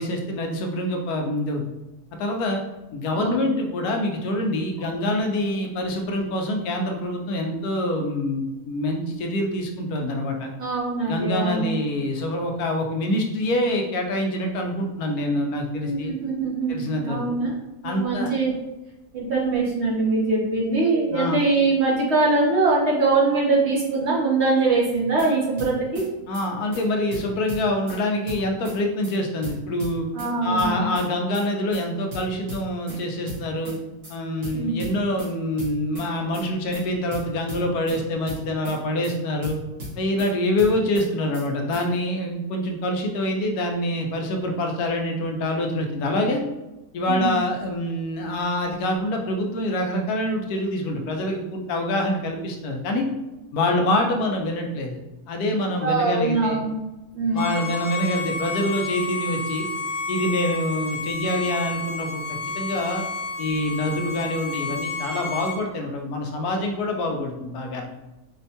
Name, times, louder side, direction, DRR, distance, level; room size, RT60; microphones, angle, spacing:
voice 1, 0.0-1.6 2.2-2.6 2.9-10.5 11.0-16.1 16.7-17.2 17.8-18.3 21.1-21.4 26.3-30.1 30.4-33.7 34.1-39.6 40.0-46.4 46.9-53.0 53.5-55.0 55.3-56.6 57.3-59.7 60.1-62.2 62.5-63.0 63.4-67.9, left 1 dB, 85° left, 2 dB, 1.1 m, -25 dB
voice 2, 10.6-11.7 15.8-17.5 17.8-18.5 19.1-26.0 30.1-30.9 34.5-34.8 47.1-47.3 55.8-56.7 57.1-57.5, right 3 dB, 60° right, -4 dB, 0.8 m, -22 dB
sound 1, 24.9-25.3 25.6-26.1 26.3-26.5 26.7-26.8 27.1-28.0 28.3-28.8 29.0-29.2 29.4-30.3 30.6-31.1 31.3-31.5 31.7-31.8 32.1-33.0 33.3-33.8 34.0-34.2 34.4-35.3 35.6-36.1 36.3-36.5 36.7-36.8 37.1-38.0 38.3-38.8 39.0-39.2 39.4-40.3 40.6-41.1 41.3-41.5 41.7-41.8, right 1 dB, 90° right, 2.0 m, -36 dB
Bowed string instrument, 57.3-65.6, left 3 dB, 45° left, 0.7 m, -31 dB
4.4 x 2.1 x 2.7 m, 1.0 s
omnidirectional pair, 1.6 m